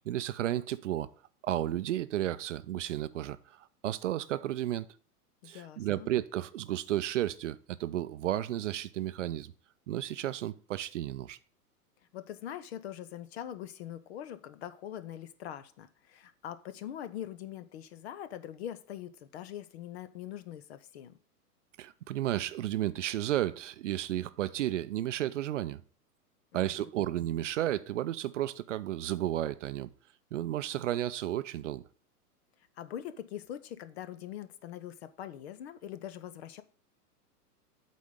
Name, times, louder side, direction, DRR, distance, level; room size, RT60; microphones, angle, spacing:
voice 1, 0.1-1.1 1.4-4.9 5.4-9.5 9.9-11.4 21.8-25.8 26.5-29.9 30.3-31.8, right 13 dB, 50° right, 0.5 m, -33 dB
voice 2, 5.4-6.1 12.1-21.2 26.5-26.9 32.8-36.6, left 11 dB, 45° left, 0.7 m, -43 dB
8.2 x 4.3 x 6.6 m
figure-of-eight pair, 105°, 47 cm